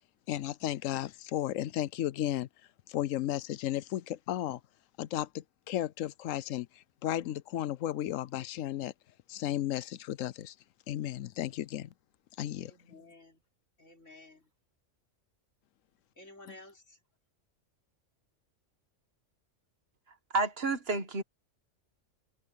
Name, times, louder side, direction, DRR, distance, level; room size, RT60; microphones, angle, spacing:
voice 1, 0.3-2.5 2.9-4.6 5.0-8.9 9.3-10.5 10.9-11.9 12.4-12.7, left 12 dB, 85° left, 1.0 m, -34 dB
voice 2, 12.7-13.4 13.8-14.5 16.2-17.0, left 2 dB, 70° left, 6.2 m, -53 dB
voice 3, 20.3-21.2, right 3 dB, 50° right, 1.7 m, -30 dB
omnidirectional pair, 1.3 m